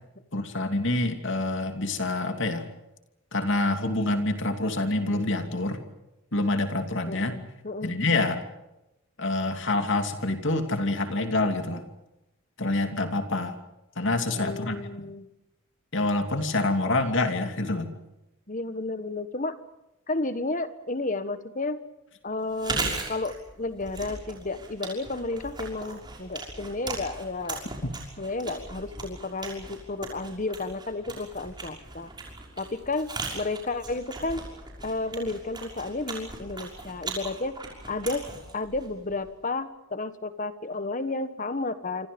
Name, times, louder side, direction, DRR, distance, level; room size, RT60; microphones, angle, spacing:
voice 1, 0.3-2.7 3.3-5.8 6.3-7.4 7.8-8.4 9.2-11.8 12.6-13.5 14.0-14.8 15.9-17.9, left 2 dB, 60° left, 6 dB, 2.8 m, -26 dB
voice 2, 7.1-8.0 14.4-15.3 18.5-19.6 20.1-21.8 22.2-27.6 28.2-32.1 32.6-33.1 33.3-34.5 34.8-37.5 37.9-38.2 38.5-42.1, left 2 dB, 35° left, 11 dB, 1.5 m, -32 dB
Chewing mastication, 22.4-39.3, right 3 dB, 20° right, 6.0 m, -38 dB
28.0 x 26.0 x 5.4 m, 0.93 s
head